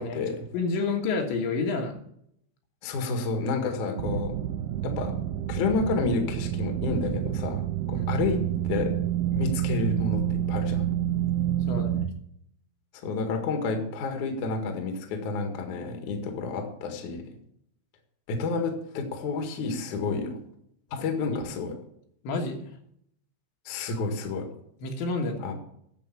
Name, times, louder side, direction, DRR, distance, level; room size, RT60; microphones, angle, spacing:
voice 1, 0.0-0.4 2.8-4.3 4.8-5.1 5.5-8.9 9.3-10.9 13.0-17.2 18.3-20.4 20.9-21.8 23.7-24.5 25.4-25.5, left 4 dB, 55° left, 4 dB, 2.6 m, -30 dB
voice 2, 0.5-2.0 7.9-8.1 11.7-12.1 22.2-22.7 24.8-25.5, left 3 dB, 75° left, 2 dB, 3.7 m, -29 dB
sound 1, 4.0-12.1, right 11 dB, 90° right, 2.3 m, -28 dB
10.5 x 7.1 x 8.4 m, 0.71 s
omnidirectional pair, 5.5 m